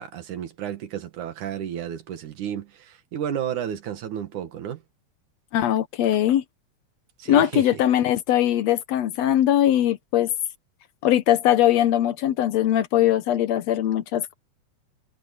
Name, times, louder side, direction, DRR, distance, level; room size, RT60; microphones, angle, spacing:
voice 1, 0.0-4.8 7.2-7.8, right 9 dB, 85° right, 3.2 m, -32 dB
voice 2, 5.5-6.4 7.3-10.3 11.0-14.3, left 12 dB, 70° left, 1.9 m, -21 dB
omnidirectional pair, 3.4 m